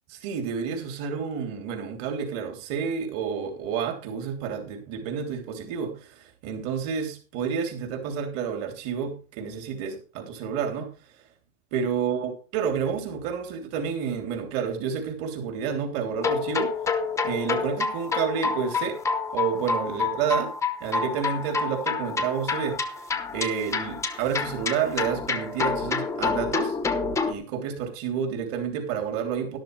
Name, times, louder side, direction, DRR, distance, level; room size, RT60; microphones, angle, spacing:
voice 1, 0.2-10.9 11.7-16.7 17.2-19.0 19.3-20.5 20.8-22.8 23.3-26.7 27.3-29.6, right 7 dB, 35° right, 4 dB, 3.3 m, -29 dB
sound 1, 16.2-27.3, left 5 dB, 5° left, 1.0 m, -28 dB
12.5 x 12.0 x 3.3 m, 0.35 s
supercardioid pair, 155°, 40 cm